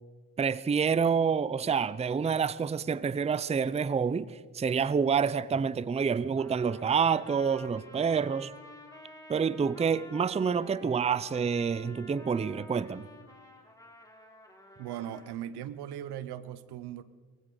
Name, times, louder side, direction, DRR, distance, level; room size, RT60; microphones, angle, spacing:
voice 1, 0.4-8.5 9.3-13.1, right 6 dB, 15° right, 0.5 m, -28 dB
Trumpet, 6.4-15.4, left 1 dB, 10° left, 3.3 m, -51 dB
voice 2, 14.8-17.0, right 11 dB, 85° right, 0.9 m, -39 dB
22.0 x 16.5 x 3.9 m
cardioid pair, 70°, 38 cm